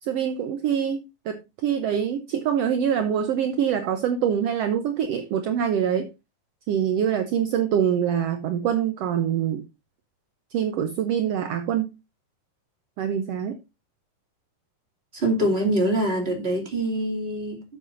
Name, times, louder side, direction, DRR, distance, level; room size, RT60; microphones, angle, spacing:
voice 1, 0.0-6.1 6.7-9.6 10.5-11.9 13.0-13.6, right 8 dB, 70° right, 1.7 m, -25 dB
voice 2, 15.1-17.6, right 1 dB, 20° right, 2.3 m, -24 dB
12.0 x 7.1 x 2.6 m
omnidirectional pair, 3.4 m